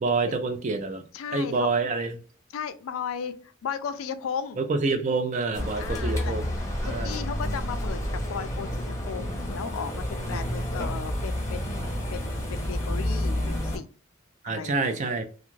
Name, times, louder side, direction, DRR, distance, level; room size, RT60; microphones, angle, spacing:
voice 1, 0.0-1.0 1.3-2.2 4.6-6.5 6.8-7.2 10.2-10.6 14.4-15.2, right 3 dB, 35° right, 0.4 m, -27 dB
voice 2, 1.1-1.7 2.5-4.6 5.8-6.3 6.8-13.9 14.5-14.9, left 7 dB, 90° left, 0.4 m, -36 dB
sound 1, 5.5-13.8, left 1 dB, 15° left, 0.7 m, -30 dB
2.5 x 2.4 x 3.1 m
head